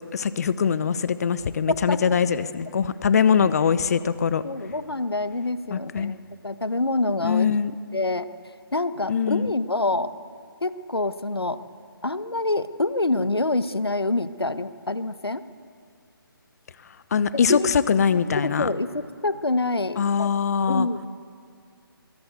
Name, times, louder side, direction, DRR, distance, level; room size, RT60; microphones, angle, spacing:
voice 1, 0.1-4.4 5.7-6.2 7.2-7.7 9.1-9.5 17.1-18.7 20.0-20.9, left 6 dB, 40° left, 15 dB, 0.9 m, -22 dB
voice 2, 1.7-2.1 4.4-6.2 6.4-7.5 7.9-8.3 8.7-10.1 10.6-11.6 12.0-15.4 17.5-17.7 18.4-20.3 20.7-21.1, left 2 dB, 90° left, 13 dB, 1.1 m, -26 dB
22.5 x 17.0 x 8.1 m, 2.2 s
figure-of-eight pair, 150°, 12 cm